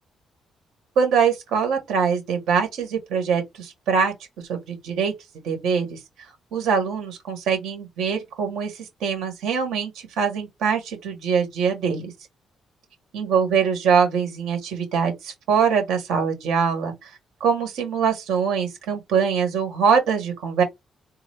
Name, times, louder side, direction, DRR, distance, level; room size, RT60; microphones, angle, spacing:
voice 1, 1.0-4.1 4.5-5.1 5.4-6.0 6.5-8.7 9.0-9.9 10.2-12.1 13.1-16.9 17.4-20.6, right 6 dB, 85° right, 1.6 m, -23 dB
3.7 x 2.1 x 3.2 m
cardioid pair, 90°, 0 cm